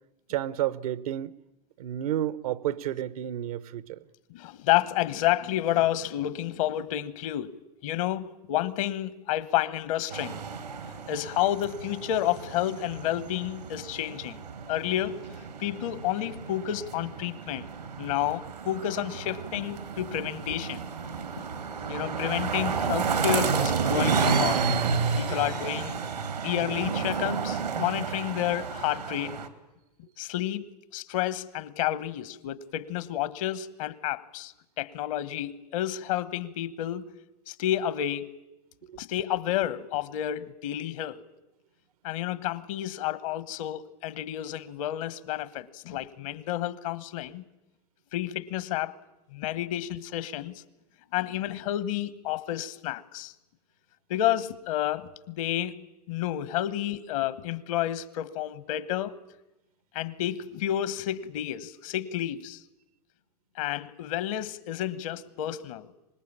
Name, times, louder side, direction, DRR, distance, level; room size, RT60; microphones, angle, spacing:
voice 1, 0.3-1.3 1.8-4.0 38.9-39.0, right 12 dB, 65° right, 1.0 m, -31 dB
voice 2, 4.3-7.6 7.8-10.4 11.1-14.4 14.7-15.2 15.6-17.7 18.0-20.8 21.9-24.6 25.1-26.0 26.4-29.4 30.2-30.7 30.9-37.1 37.5-38.3 39.0-41.2 42.0-47.4 48.1-48.9 49.3-50.6 51.1-53.3 54.1-55.7 56.1-59.2 59.9-62.6 63.6-65.9, left 12 dB, 55° left, 1.4 m, -30 dB
sound 1, 10.1-29.5, right 5 dB, 85° right, 2.4 m, -31 dB
25.0 x 20.5 x 8.8 m
hypercardioid pair, 95°, 20 cm